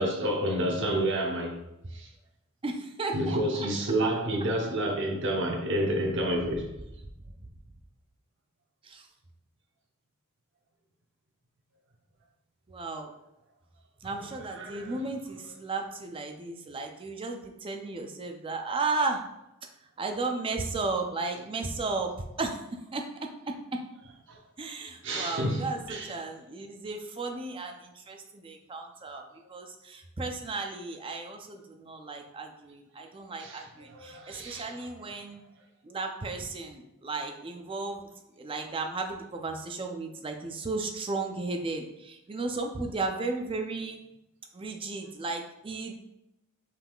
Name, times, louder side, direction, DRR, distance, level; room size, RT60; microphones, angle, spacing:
voice 1, 0.0-1.6 1.9-2.1 3.1-6.7 14.5-15.0 24.3-24.4 25.0-26.1 33.4-33.6 33.9-34.7, right 1 dB, 55° right, 0.9 m, -29 dB
voice 2, 2.6-3.4 8.8-9.1 12.7-13.1 14.0-19.2 20.0-22.1 22.4-22.6 22.9-23.0 24.6-35.4 35.8-38.1 38.4-44.0 44.5-45.9, right 3 dB, 25° right, 0.4 m, -34 dB
5.6 x 3.6 x 2.3 m
head